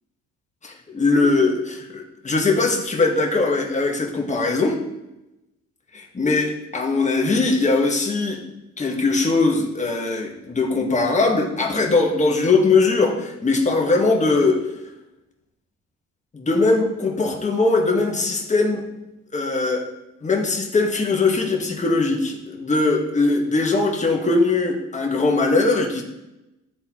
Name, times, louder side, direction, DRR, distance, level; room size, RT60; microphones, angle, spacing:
voice 1, 0.6-4.8 5.9-8.4 8.8-14.6 16.3-18.8 19.3-19.8 20.2-26.0, left 3 dB, 25° left, 1 dB, 1.3 m, -20 dB
11.5 x 3.9 x 2.9 m, 0.94 s
cardioid pair, 90°, 30 cm